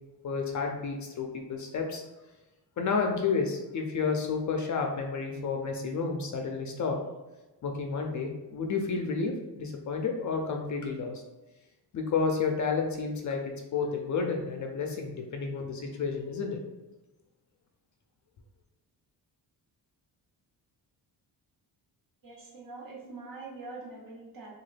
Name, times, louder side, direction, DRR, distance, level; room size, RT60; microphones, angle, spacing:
voice 1, 0.2-2.0 2.8-7.0 7.6-11.2 11.9-16.6, left 5 dB, 50° left, 2 dB, 0.4 m, -31 dB
voice 2, 22.2-24.5, right 3 dB, 55° right, -4 dB, 1.0 m, -44 dB
3.0 x 2.4 x 3.2 m, 1.1 s
wide cardioid pair, 140°, 41 cm